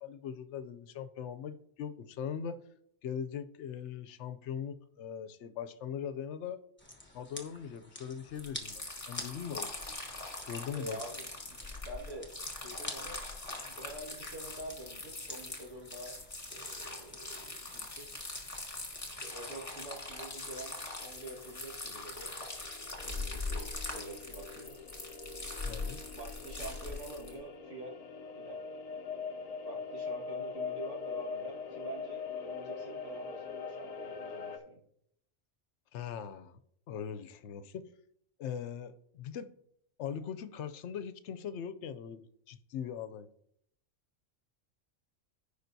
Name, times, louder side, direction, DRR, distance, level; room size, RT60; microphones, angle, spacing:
voice 1, 0.0-2.6 3.0-6.6 7.1-9.8 10.4-11.0 25.6-26.0 35.9-36.6 36.9-37.9 38.4-39.5 40.0-43.3, left 8 dB, 70° left, 0.8 m, -40 dB
sound 1, 6.8-19.4, left 1 dB, 10° left, 0.9 m, -50 dB
sound 2, 8.4-27.4, left 2 dB, 25° left, 1.6 m, -42 dB
voice 2, 10.7-11.6 11.8-12.3 12.6-13.2 13.6-16.2 16.5-18.1 19.2-22.3 23.0-24.8 26.1-28.0 28.4-28.6 29.6-34.8, right 2 dB, 70° right, 2.2 m, -46 dB
sound 3, 20.8-34.6, left 5 dB, 50° left, 0.4 m, -43 dB
15.0 x 5.1 x 2.7 m
omnidirectional pair, 1.3 m